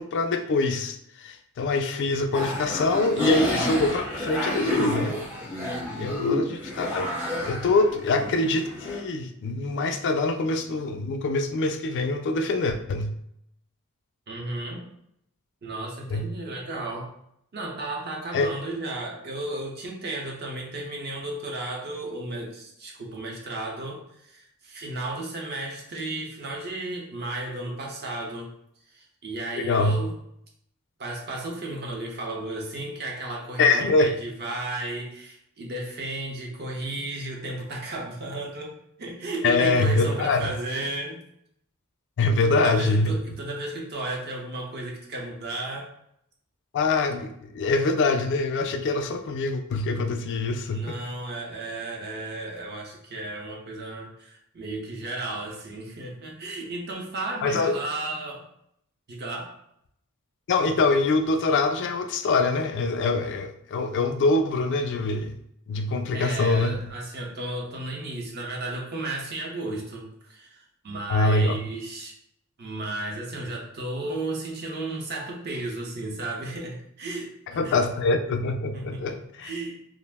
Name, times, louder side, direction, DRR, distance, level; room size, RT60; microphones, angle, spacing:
voice 1, 0.0-5.2 5.9-7.1 7.4-13.1 16.1-16.3 18.3-18.5 29.6-30.0 33.6-34.1 39.4-40.5 42.2-43.1 46.7-51.0 57.4-57.7 60.5-65.3 65.7-66.7 71.1-71.6 77.5-79.5, left 3 dB, 55° left, 6 dB, 0.3 m, -24 dB
sound 1, 2.3-9.0, left 1 dB, 10° right, 0.7 m, -29 dB
voice 2, 14.3-14.9 15.6-17.1 17.5-28.5 28.9-30.1 31.0-41.2 42.4-45.9 50.7-58.5 59.1-59.5 66.1-72.1 72.6-77.8 78.7-79.8, right 2 dB, 50° right, -1 dB, 0.7 m, -34 dB
2.4 x 2.0 x 3.4 m, 0.74 s
head